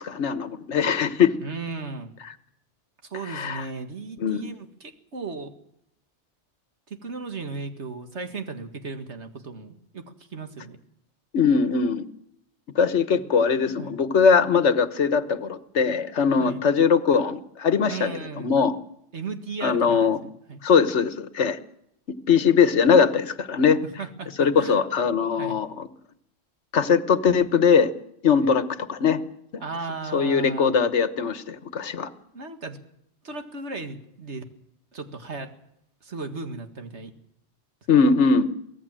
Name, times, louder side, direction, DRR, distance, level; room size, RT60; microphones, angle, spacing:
voice 1, 0.0-1.3 3.3-3.6 4.2-4.4 11.3-12.0 12.7-18.2 18.4-18.7 19.6-20.2 20.6-21.6 22.3-23.8 24.4-25.9 26.7-27.9 28.2-28.6 28.9-29.2 30.1-32.1 37.9-38.5, left 6 dB, 80° left, 12 dB, 1.5 m, -21 dB
voice 2, 1.4-2.1 3.0-5.5 6.9-10.8 13.8-13.9 16.4-16.6 17.9-18.5 19.1-20.6 24.0-24.8 25.4-25.6 28.4-28.5 29.6-30.7 32.3-32.8 33.2-34.4 34.9-35.5 36.0-37.1 38.0-38.1, right 4 dB, 80° right, 6 dB, 2.2 m, -36 dB
23.5 x 17.5 x 7.6 m, 0.76 s
omnidirectional pair, 1.2 m